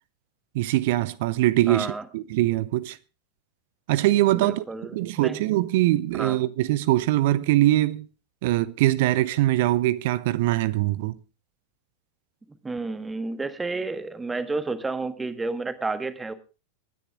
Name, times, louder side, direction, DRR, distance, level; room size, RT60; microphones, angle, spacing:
voice 1, 0.5-3.0 3.9-4.6 4.9-8.1 8.4-11.2, right 16 dB, 50° right, 0.7 m, -22 dB
voice 2, 1.7-2.0 4.3-5.4 6.2-6.4 12.6-16.3, right 3 dB, 10° right, 1.4 m, -31 dB
24.5 x 10.0 x 3.6 m
figure-of-eight pair, 90°, 0 cm